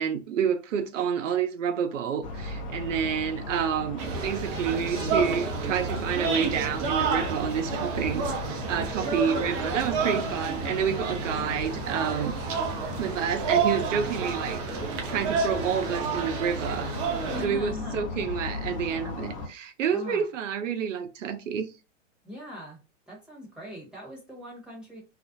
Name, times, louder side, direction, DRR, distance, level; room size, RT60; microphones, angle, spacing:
voice 1, 0.0-12.4 13.0-14.6 15.1-16.9 17.4-21.7, right 7 dB, 75° right, 0.6 m, -29 dB
sound 1, 2.2-19.5, left 3 dB, 40° left, 0.7 m, -37 dB
sound 2, 4.0-17.5, right 5 dB, 30° right, 0.4 m, -30 dB
voice 2, 9.2-9.5 17.3-18.1 19.9-20.3 22.2-22.8 23.1-25.0, left 1 dB, ahead, 0.8 m, -41 dB
2.4 x 2.0 x 2.5 m
hypercardioid pair, 125°, 38 cm